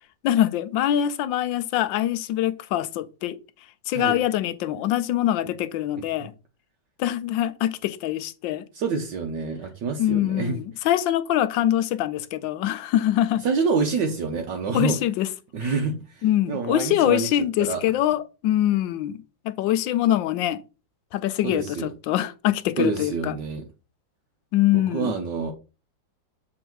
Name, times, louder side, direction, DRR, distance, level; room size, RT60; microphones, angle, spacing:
voice 1, 0.2-3.4 3.9-6.3 7.0-8.7 10.0-13.4 14.7-15.3 16.2-19.2 19.4-20.6 21.1-23.3 24.5-25.1, left 12 dB, 80° left, 1.3 m, -24 dB
voice 2, 8.7-10.6 13.4-15.0 15.5-17.3 17.6-17.8 21.4-21.9 22.8-23.7 24.7-25.5, right 4 dB, 70° right, 1.5 m, -27 dB
7.3 x 3.6 x 4.5 m
omnidirectional pair, 2.1 m